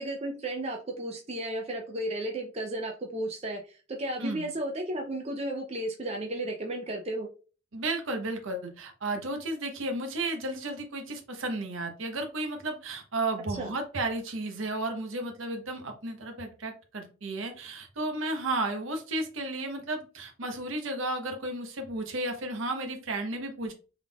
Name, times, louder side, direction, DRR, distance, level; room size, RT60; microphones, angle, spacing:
voice 1, 0.0-7.3 13.6-13.7, right 1 dB, 30° right, 1 dB, 0.5 m, -34 dB
voice 2, 4.2-4.5 7.7-23.7, right 2 dB, 70° right, 4 dB, 0.9 m, -33 dB
3.6 x 3.5 x 2.3 m, 0.35 s
head